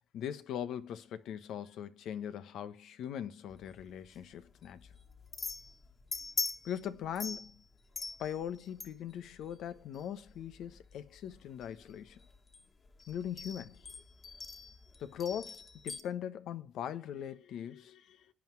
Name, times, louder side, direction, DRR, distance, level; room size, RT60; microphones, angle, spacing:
voice 1, 0.0-4.9 6.6-7.6 8.2-12.2 13.1-13.9 15.0-18.3, left 9 dB, 80° left, 1.2 m, -40 dB
sound 1, 3.5-16.0, left 4 dB, 40° left, 2.5 m, -44 dB
17.0 x 9.7 x 4.7 m
cardioid pair, 90°, 0 cm